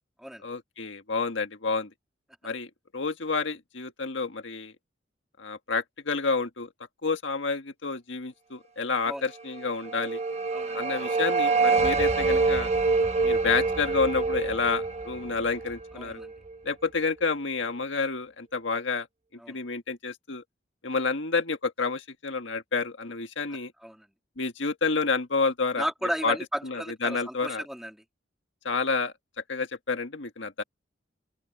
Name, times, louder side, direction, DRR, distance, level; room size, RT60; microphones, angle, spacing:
voice 1, 0.4-1.9 2.4-4.7 5.4-6.7 7.0-10.2 10.7-12.7 13.2-16.2 16.6-19.1 19.5-20.4 20.8-23.7 24.4-25.9 26.2-26.4 26.6-27.6 28.6-29.1 29.5-30.6, left 4 dB, 90° left, 1.6 m, -29 dB
sound 1, 9.5-16.6, right 4 dB, 35° right, 1.2 m, -26 dB
voice 2, 10.5-10.8 15.9-16.3 19.4-19.6 23.8-24.1 25.8-28.0, equal, ahead, 3.4 m, -34 dB
open air
head